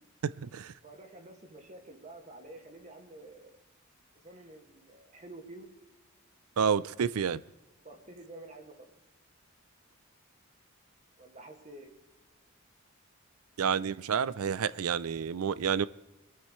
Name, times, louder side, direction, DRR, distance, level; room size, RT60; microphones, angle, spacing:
voice 1, 0.2-0.7 6.6-7.4 13.6-15.9, right 7 dB, 90° right, 18 dB, 0.5 m, -29 dB
voice 2, 0.8-3.6 4.2-5.8 7.8-8.9 11.2-11.9, right 2 dB, 35° right, 4 dB, 1.9 m, -49 dB
22.5 x 13.5 x 3.2 m, 1.0 s
head